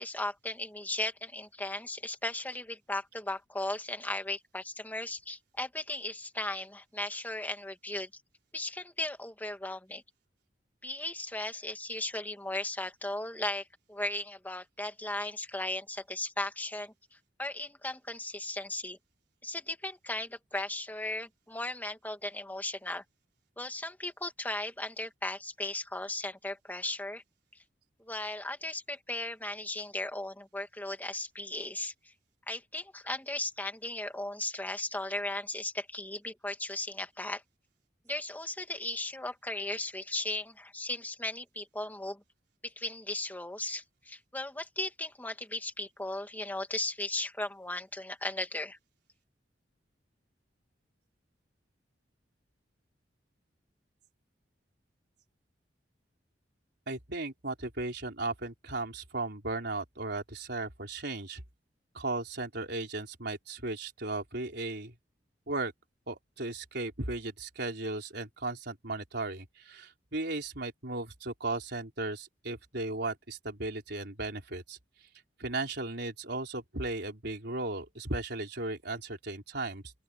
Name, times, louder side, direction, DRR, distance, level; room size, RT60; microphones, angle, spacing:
voice 1, 0.0-8.1 8.5-10.0 10.8-16.9 17.4-19.0 19.4-23.0 23.6-27.2 28.0-32.1 32.5-37.4 38.1-42.2 42.6-48.8, left 2 dB, 10° left, 2.5 m, -36 dB
voice 2, 56.9-61.4 61.9-64.9 65.5-65.7 66.1-74.8 75.4-79.9, right 2 dB, 65° right, 4.5 m, -36 dB
open air
head